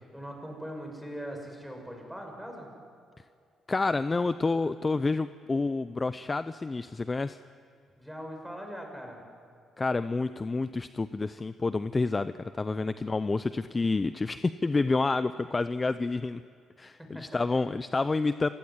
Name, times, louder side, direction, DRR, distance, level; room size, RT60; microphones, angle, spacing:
voice 1, 0.1-2.7 8.0-9.2 17.0-17.3, equal, ahead, 2 dB, 6.3 m, -41 dB
voice 2, 3.7-7.4 9.8-16.4 16.8-18.5, left 3 dB, 25° left, 12 dB, 0.6 m, -29 dB
28.5 x 16.0 x 9.7 m, 2.3 s
cardioid pair, 90°, 0 cm